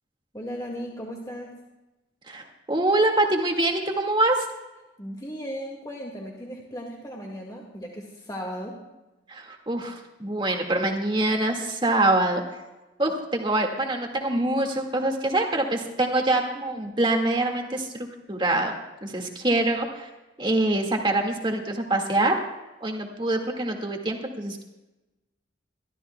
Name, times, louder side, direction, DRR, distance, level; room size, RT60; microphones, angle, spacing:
voice 1, 0.3-1.5 5.0-8.8, equal, 20° left, -1 dB, 2.0 m, -36 dB
voice 2, 2.3-4.5 9.3-12.4 13.0-18.7 19.0-20.1 20.4-22.3 22.8-24.6, right 2 dB, 25° right, 2 dB, 1.9 m, -25 dB
25.0 x 13.5 x 2.3 m, 1.0 s
head